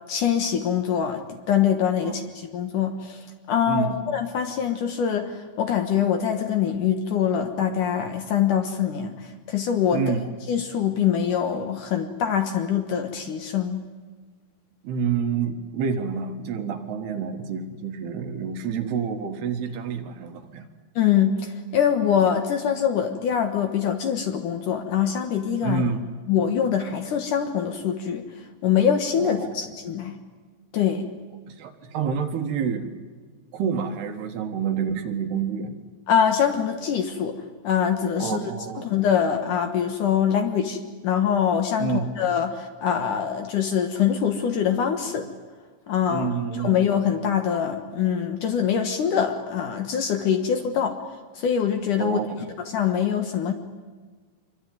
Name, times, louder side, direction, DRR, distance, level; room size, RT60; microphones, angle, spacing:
voice 1, 0.1-10.0 10.5-13.8 21.0-25.8 26.3-28.2 28.6-30.2 30.7-31.1 36.1-37.4 37.6-38.4 38.8-40.8 41.0-45.3 45.9-46.3 46.6-51.0 51.3-52.2 52.7-53.5, left 8 dB, 60° left, 6 dB, 2.4 m, -24 dB
voice 2, 3.7-4.0 9.9-10.2 14.8-20.7 25.6-26.1 29.2-29.6 31.5-32.9 33.5-35.8 38.2-38.9 41.8-42.1 46.1-46.8 52.0-52.4, right 6 dB, 75° right, 6 dB, 3.6 m, -28 dB
26.0 x 23.5 x 9.4 m, 1.4 s
omnidirectional pair, 4.9 m